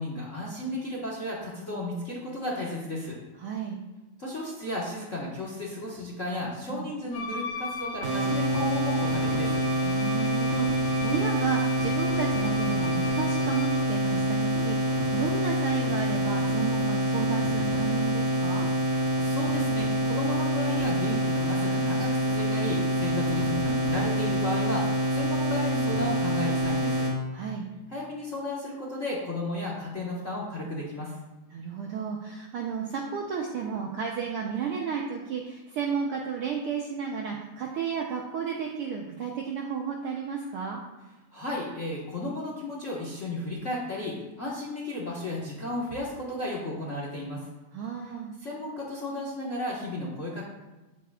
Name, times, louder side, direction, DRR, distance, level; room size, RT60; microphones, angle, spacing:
voice 1, 0.0-3.2 4.2-9.6 19.2-27.1 27.9-31.2 41.3-47.5 48.4-50.4, left 1 dB, 40° left, -4 dB, 1.1 m, -34 dB
voice 2, 3.4-3.8 6.7-6.9 9.8-18.7 27.3-27.7 31.5-40.8 47.7-48.3, right 6 dB, 75° right, -1 dB, 1.3 m, -33 dB
Wind instrument woodwind instrument, 7.1-13.9, left 2 dB, 75° left, 1.4 m, -38 dB
sound 1, 8.0-27.1, equal, 55° right, 2.6 m, -26 dB
9.2 x 9.2 x 2.4 m, 1.1 s
omnidirectional pair, 3.3 m